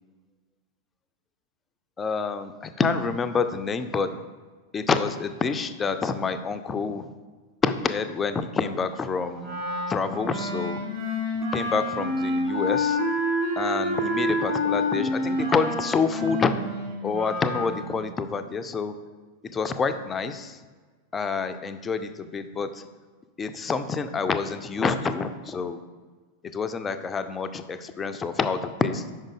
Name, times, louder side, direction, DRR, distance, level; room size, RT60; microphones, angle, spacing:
voice 1, 2.0-4.1 4.7-7.1 7.6-9.6 9.9-10.8 11.5-13.0 13.6-16.5 17.0-18.9 19.4-20.6 21.1-22.8 23.4-25.8 26.5-29.1, left 5 dB, 20° left, 9 dB, 0.4 m, -27 dB
Wind instrument woodwind instrument, 9.4-17.7, left 1 dB, 45° right, 1.8 m, -28 dB
5.3 x 4.9 x 3.6 m, 1.4 s
figure-of-eight pair, 90°, 0 cm